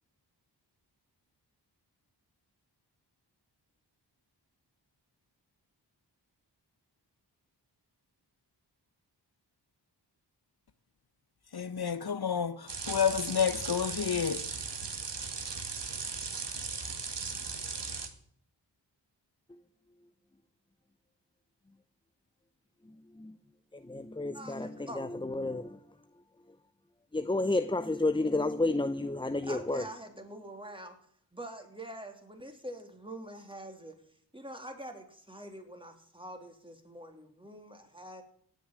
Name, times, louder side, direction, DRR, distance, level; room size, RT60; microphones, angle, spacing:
voice 1, 11.5-14.5, left 7 dB, 60° left, 0.9 m, -30 dB
sound 1, 12.7-18.1, right 4 dB, 70° right, 2.0 m, -37 dB
voice 2, 23.7-25.8 27.1-29.8, left 2 dB, 10° left, 0.7 m, -31 dB
voice 3, 24.3-25.0 29.4-31.0 31.3-34.0 34.3-38.2, right 1 dB, 10° right, 3.1 m, -45 dB
17.5 x 6.6 x 9.3 m
wide cardioid pair, 70°, 43 cm